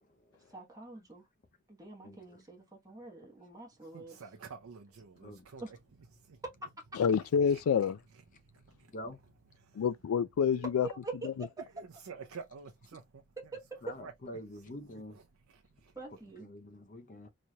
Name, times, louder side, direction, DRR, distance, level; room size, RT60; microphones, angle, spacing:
voice 1, 0.5-1.2 1.7-4.2 5.6-5.7 6.9-7.0 10.8-11.6 13.4-13.8 15.9-16.5, right 3 dB, 15° right, 1.0 m, -45 dB
voice 2, 3.9-5.8 6.2-6.4 7.5-7.6 8.4-8.9 9.5-9.8 11.8-13.2 14.0-14.1 14.5-14.7 15.1-15.9, right 5 dB, 85° right, 0.6 m, -50 dB
voice 3, 7.0-8.0 9.8-10.9, left 7 dB, 80° left, 0.3 m, -27 dB
voice 4, 13.8-15.2 16.5-17.3, left 1 dB, 40° left, 0.6 m, -45 dB
4.1 x 3.1 x 2.2 m
head